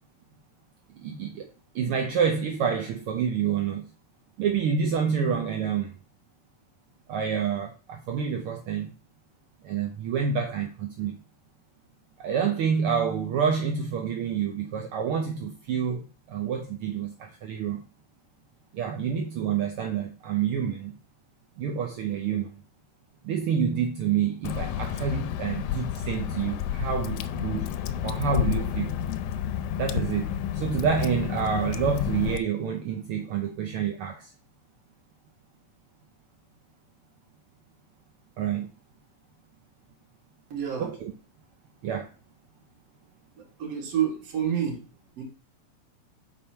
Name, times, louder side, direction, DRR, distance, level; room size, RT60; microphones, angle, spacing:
voice 1, 1.0-1.5 1.7-3.9 4.4-5.9 7.1-8.9 9.6-11.2 12.2-17.8 18.7-20.9 21.6-22.5 23.2-27.7 28.0-28.9 29.8-30.3 30.5-34.3 38.4-38.7 40.8-41.1 41.8-42.1, right 7 dB, 80° right, 1.2 m, -28 dB
Water / Drip, 24.4-32.4, left 10 dB, 85° left, 2.0 m, -30 dB
voice 2, 40.5-40.9 43.3-44.9 45.2-45.3, right 9 dB, 55° right, 2.9 m, -29 dB
5.4 x 4.3 x 5.7 m
omnidirectional pair, 3.4 m